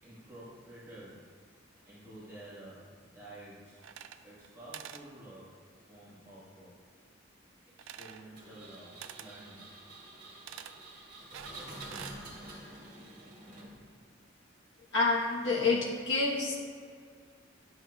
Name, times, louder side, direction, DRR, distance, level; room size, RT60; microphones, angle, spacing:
voice 1, 0.0-1.2 1.9-3.8 4.2-5.6 5.9-6.7 7.8-9.7, right 1 dB, 15° right, -11 dB, 1.4 m, -50 dB
sound 1, 3.8-4.5 4.7-5.1 7.8-8.3 9.0-9.3 10.5-10.8 11.3-12.2, right 9 dB, 80° right, 0.3 m, -46 dB
Engine, 8.3-14.0, right 1 dB, 45° right, 1.8 m, -48 dB
voice 2, 14.9-16.6, left 3 dB, 60° left, -4 dB, 1.2 m, -28 dB
10.5 x 6.3 x 2.3 m, 2.2 s
head